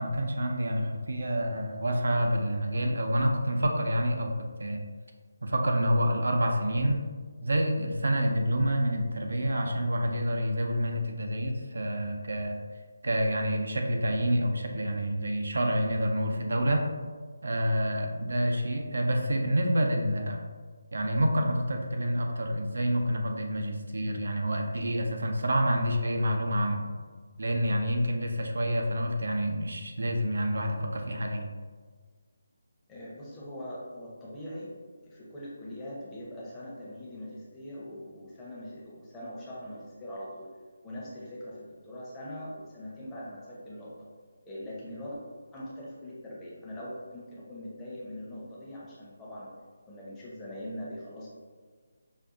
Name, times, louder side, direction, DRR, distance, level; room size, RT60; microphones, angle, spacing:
voice 1, 0.0-4.8 5.4-7.0 7.4-12.6 13.0-16.8 17.4-20.4 20.9-26.9 27.4-31.4, equal, 75° right, 3 dB, 0.5 m, -28 dB
voice 2, 32.9-34.7 35.0-40.5 40.8-43.9 44.4-45.2 45.5-49.5 49.9-51.3, left 1 dB, 10° left, -7 dB, 0.8 m, -42 dB
5.1 x 2.3 x 2.5 m, 1.5 s
figure-of-eight pair, 160°, 0 cm